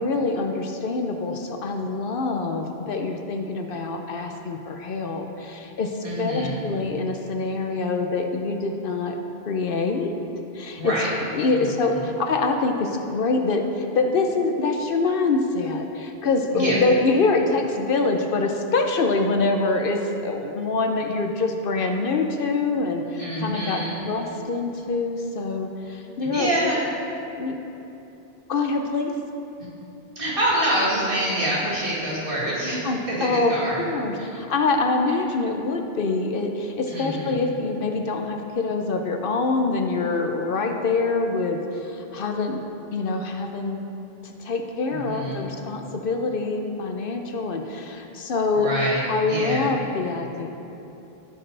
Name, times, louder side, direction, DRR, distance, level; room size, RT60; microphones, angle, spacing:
voice 1, 0.0-9.2 9.5-10.1 10.5-10.9 11.3-26.8 27.4-27.6 28.5-29.1 31.6-31.7 32.8-42.6 42.9-43.8 44.2-48.7 49.1-50.5, left 3 dB, 65° left, 4 dB, 0.8 m, -25 dB
voice 2, 6.0-6.6 10.8-11.1 11.5-11.7 16.5-16.8 23.2-24.0 26.3-26.8 30.2-33.8 34.2-34.4 36.9-37.4 44.9-45.4 48.6-49.7, right 1 dB, 60° right, -6 dB, 2.2 m, -26 dB
13.5 x 6.6 x 3.3 m, 2.9 s
omnidirectional pair, 1.1 m